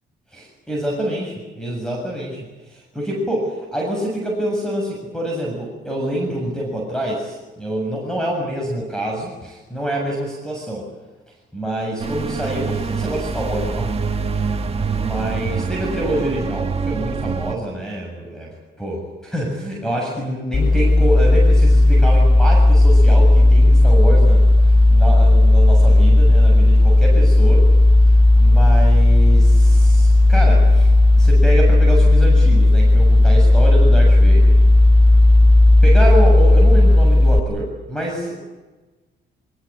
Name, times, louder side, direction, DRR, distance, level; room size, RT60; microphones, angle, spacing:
voice 1, 0.3-10.8 11.5-13.9 15.0-27.6 28.4-30.9 31.2-34.6 35.8-38.5, right 1 dB, 5° left, -1 dB, 7.5 m, -26 dB
sound 1, 12.0-17.6, right 4 dB, 30° right, 2.1 m, -25 dB
sound 2, 20.5-37.4, left 2 dB, 25° left, 1.4 m, -12 dB
24.0 x 20.0 x 8.8 m, 1.2 s
cardioid pair, 90°, 20 cm